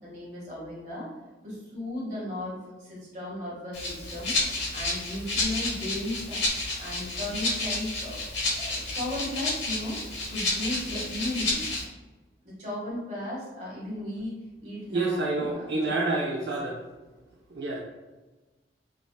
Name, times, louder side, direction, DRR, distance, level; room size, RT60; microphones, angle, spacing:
voice 1, 0.0-1.1 1.4-4.4 4.7-6.4 6.8-8.2 8.6-10.0 10.3-11.6 12.4-15.8, left 1 dB, 40° right, -6 dB, 1.1 m, -35 dB
Rattle (instrument), 3.7-11.8, left 2 dB, 75° left, 1.0 m, -30 dB
voice 2, 14.9-16.8 17.5-17.8, right 2 dB, 65° right, -3 dB, 0.3 m, -28 dB
3.5 x 2.4 x 2.2 m, 1.2 s
head